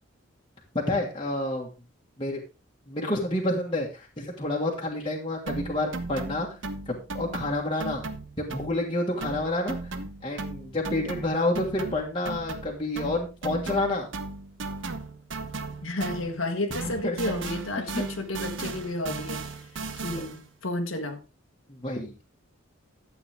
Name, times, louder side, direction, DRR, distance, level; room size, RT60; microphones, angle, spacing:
voice 1, 0.8-1.7 2.2-2.4 2.9-6.5 6.9-8.0 8.4-9.8 10.2-14.1 17.0-17.2 17.9-18.0 20.2-20.3 21.7-22.1, left 2 dB, 25° left, 1.7 m, -29 dB
sound 1, 5.5-8.9 9.2-16.5 16.7-20.5, right 3 dB, 65° right, 1.1 m, -36 dB
voice 2, 15.8-19.4 19.7-21.2, left 1 dB, 80° left, 1.5 m, -32 dB
12.0 x 8.2 x 3.5 m
head